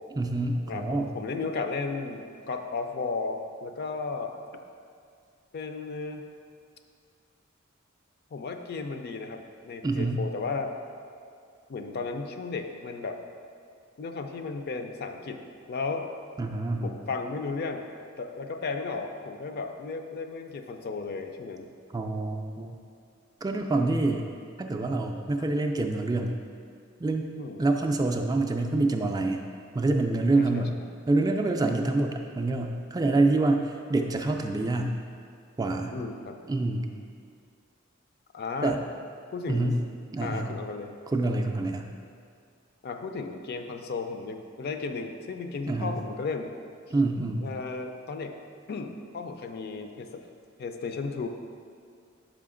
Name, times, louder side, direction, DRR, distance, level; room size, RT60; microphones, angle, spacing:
voice 1, 0.2-1.1 9.8-10.2 16.4-17.0 21.9-22.8 23.4-24.2 24.6-26.4 27.0-27.3 27.6-29.4 29.7-30.8 31.1-35.0 35.6-36.0 36.5-36.9 38.6-38.8 39.5-39.8 40.1-40.6 41.1-41.9 45.7-46.0 46.9-47.5, right 2 dB, 20° right, 3 dB, 0.3 m, -26 dB
voice 2, 0.7-4.3 5.5-6.3 8.3-10.7 11.7-13.2 14.0-16.1 16.8-17.9 18.2-21.7 27.3-27.6 30.3-30.9 31.8-32.0 35.9-36.4 38.3-38.8 39.3-39.8 40.2-40.9 42.8-46.5 47.4-48.3 48.7-50.2 50.6-51.3, left 4 dB, 50° left, 6 dB, 0.4 m, -34 dB
6.2 x 5.0 x 3.7 m, 2.3 s
head